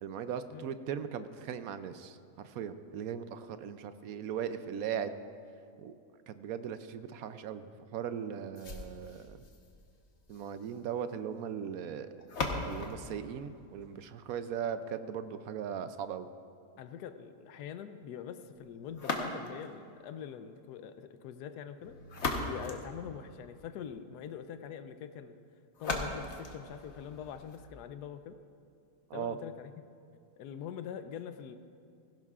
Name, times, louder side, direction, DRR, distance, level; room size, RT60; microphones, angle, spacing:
voice 1, 0.0-5.2 5.8-5.9 6.3-9.4 10.3-12.1 12.7-16.3 29.1-29.4, right 8 dB, 70° right, 11 dB, 1.0 m, -38 dB
sound 1, 8.6-14.5 18.9-19.8 21.8-23.7 25.7-27.7, left 3 dB, 50° left, 1.3 m, -39 dB
voice 2, 16.8-22.0 22.4-25.4 25.8-28.4 29.1-29.7 30.4-31.6, left 8 dB, 85° left, 10 dB, 1.2 m, -44 dB
16.5 x 16.0 x 2.4 m, 2.5 s
omnidirectional pair, 1.7 m